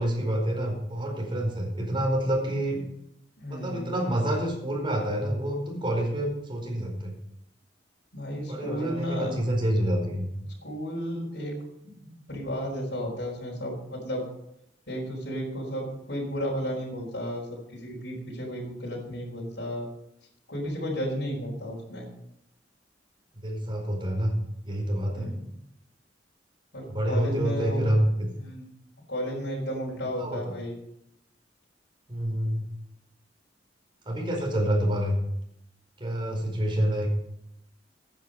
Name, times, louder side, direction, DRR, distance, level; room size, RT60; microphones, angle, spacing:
voice 1, 0.0-2.8 3.5-7.1 8.4-10.3 23.4-24.3 24.6-25.3 26.9-28.3 30.2-30.5 32.1-32.6 34.0-35.2 36.0-37.1, right 1 dB, 30° right, 0 dB, 4.8 m, -27 dB
voice 2, 3.4-3.9 8.1-9.4 10.4-11.6 11.8-14.2 14.9-19.9 20.5-22.1 25.1-25.6 26.7-27.8 28.3-28.7 29.1-30.7, equal, 65° left, -3 dB, 5.1 m, -33 dB
15.0 x 10.0 x 5.4 m, 0.80 s
head